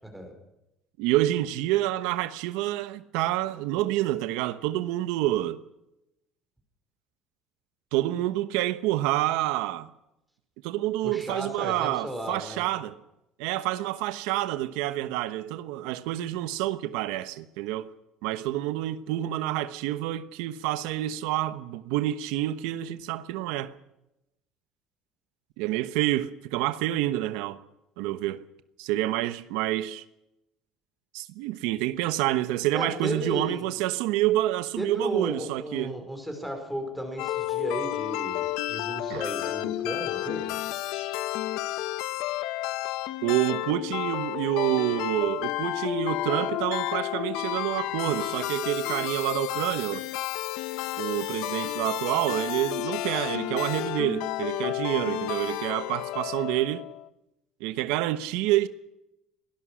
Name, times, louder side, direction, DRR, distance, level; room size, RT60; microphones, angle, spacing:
voice 1, 1.0-5.6 7.9-9.9 10.6-13.0 13.4-17.9 18.2-23.7 25.6-27.6 28.0-28.4 28.8-30.0 31.1-36.0 39.1-39.2 43.2-50.0 51.0-56.9 57.6-58.7, right 15 dB, 85° right, 1.0 m, -28 dB
voice 2, 11.0-12.6 32.7-33.8 34.8-40.6, equal, ahead, 5.2 m, -34 dB
sound 1, 37.2-57.1, left 15 dB, 70° left, 1.0 m, -31 dB
23.5 x 18.5 x 6.4 m
cardioid pair, 155°, 0 cm